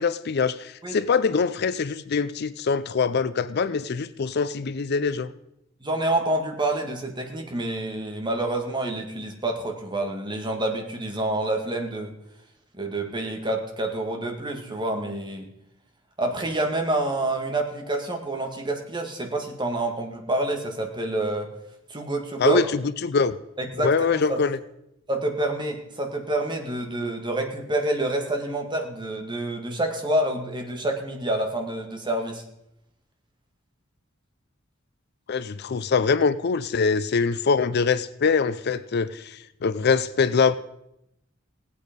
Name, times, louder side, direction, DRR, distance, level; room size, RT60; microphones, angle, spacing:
voice 1, 0.0-5.3 22.4-23.4 23.8-24.6 35.3-40.5, left 5 dB, 55° left, 15 dB, 0.5 m, -23 dB
voice 2, 5.8-12.2 12.7-15.5 16.2-21.5 21.9-22.6 23.6-24.4 25.1-32.4, right 2 dB, 25° right, 3 dB, 1.8 m, -27 dB
18.0 x 8.5 x 5.2 m, 0.83 s
head